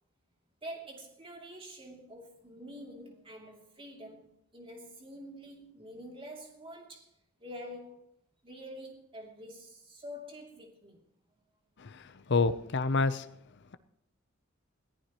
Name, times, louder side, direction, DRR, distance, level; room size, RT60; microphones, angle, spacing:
voice 1, 0.6-7.1 7.4-8.1 8.4-11.0, equal, 25° right, 1 dB, 2.7 m, -47 dB
voice 2, 12.3-13.2, left 4 dB, 55° left, 12 dB, 0.7 m, -27 dB
21.5 x 14.5 x 3.0 m, 0.72 s
head